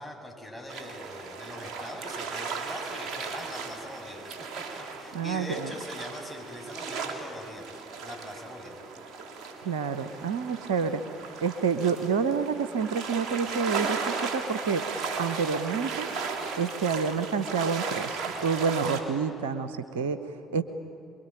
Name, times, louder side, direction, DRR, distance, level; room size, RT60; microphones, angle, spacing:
voice 1, 0.0-4.4 4.8-8.8, left 1 dB, ahead, 2 dB, 7.3 m, -42 dB
sound 1, 0.7-19.0, right 5 dB, 55° right, 3.5 m, -36 dB
voice 2, 5.1-5.7 9.6-11.0 11.4-14.9 15.2-16.1 16.6-20.6, right 5 dB, 80° right, 11 dB, 0.9 m, -28 dB
25.0 x 23.0 x 9.0 m, 2.7 s
hypercardioid pair, 55°, 0 cm